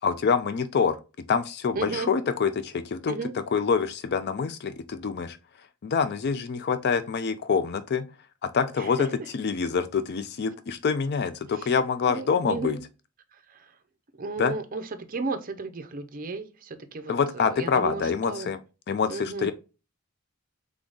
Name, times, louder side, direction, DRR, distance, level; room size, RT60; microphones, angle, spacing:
voice 1, 0.0-1.0 1.3-3.1 3.5-5.4 5.8-8.1 8.4-9.1 9.3-12.8 14.4-14.5 17.1-18.6 18.9-19.5, left 6 dB, 50° left, 0.4 m, -26 dB
voice 2, 1.7-2.1 3.0-3.3 8.8-9.1 11.5-11.7 12.1-12.8 13.3-13.7 14.2-18.5 19.1-19.5, right 3 dB, 40° right, 0.6 m, -34 dB
3.6 x 3.5 x 3.8 m
head